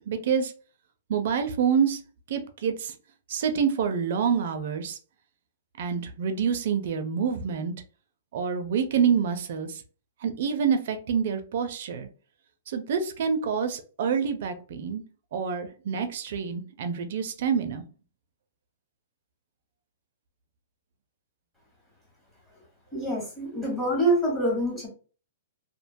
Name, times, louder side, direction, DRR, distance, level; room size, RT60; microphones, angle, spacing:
voice 1, 0.1-0.5 1.1-2.0 2.3-2.9 3.3-5.0 5.8-7.7 8.3-9.8 10.2-12.1 12.7-15.0 15.3-17.8, right 7 dB, 60° right, 8 dB, 0.5 m, -27 dB
voice 2, 22.9-24.9, right 1 dB, 10° left, -3 dB, 1.1 m, -26 dB
2.6 x 2.2 x 2.6 m, 0.37 s
hypercardioid pair, 155°, 0 cm